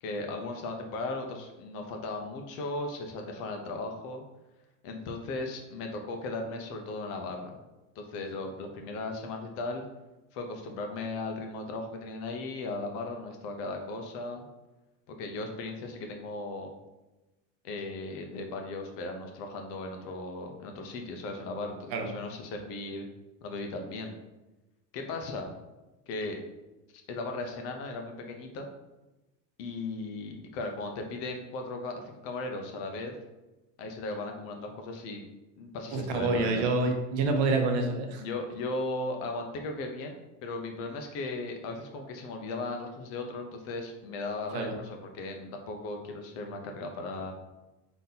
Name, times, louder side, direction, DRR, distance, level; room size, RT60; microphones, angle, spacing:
voice 1, 0.0-4.2 4.8-7.5 8.0-9.8 10.3-14.5 15.1-16.7 17.6-23.0 23.4-24.1 24.9-25.5 26.1-26.4 27.1-28.7 29.6-33.1 33.8-35.3 35.6-36.6 38.2-47.3, left 2 dB, 40° left, 4 dB, 0.5 m, -37 dB
voice 2, 35.9-38.2 44.5-44.7, right 3 dB, 65° right, 4 dB, 0.8 m, -27 dB
3.9 x 2.7 x 3.9 m, 1.0 s
cardioid pair, 175°, 36 cm